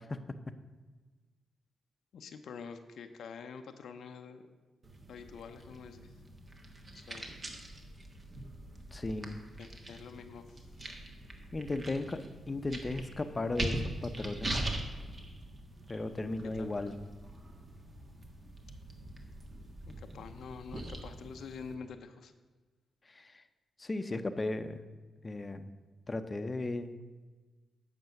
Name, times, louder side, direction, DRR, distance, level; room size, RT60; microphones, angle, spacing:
voice 1, 2.1-4.4 5.1-6.2 6.9-7.2 9.6-10.6 16.4-16.7 19.8-22.3, left 5 dB, 75° left, 7 dB, 0.6 m, -47 dB
sound 1, 4.8-21.7, right 1 dB, 40° right, 1.5 m, -42 dB
voice 2, 8.9-9.4 11.5-12.2 12.5-14.6 15.9-16.9 23.0-23.4 23.8-24.8 25.2-25.7 26.1-26.9, left 2 dB, 30° left, 10 dB, 0.7 m, -36 dB
9.3 x 6.1 x 5.9 m, 1.3 s
cardioid pair, 60°, 0 cm